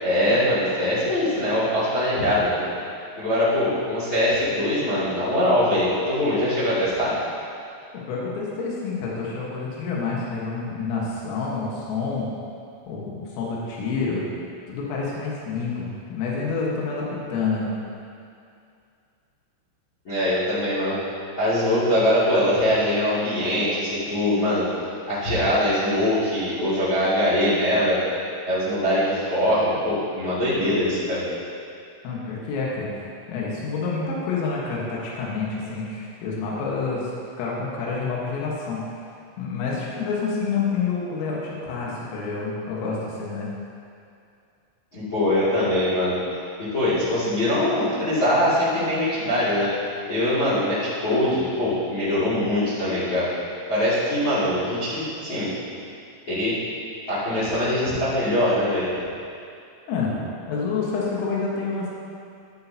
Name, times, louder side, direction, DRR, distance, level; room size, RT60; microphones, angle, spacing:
voice 1, 0.0-2.6 3.2-7.1 20.0-21.0 21.4-24.6 25.1-28.0 28.5-31.2 44.9-46.2 46.6-49.7 50.1-53.3 53.7-55.5 56.3-56.6 57.1-58.9, left 1 dB, 30° left, -12 dB, 2.5 m, -22 dB
voice 2, 8.1-12.3 12.9-14.3 14.7-17.0 17.3-17.7 32.0-38.8 39.4-43.5 59.9-60.2 60.5-61.9, left 4 dB, 80° left, -5 dB, 4.2 m, -28 dB
12.5 x 11.5 x 2.9 m, 2.5 s
omnidirectional pair, 5.9 m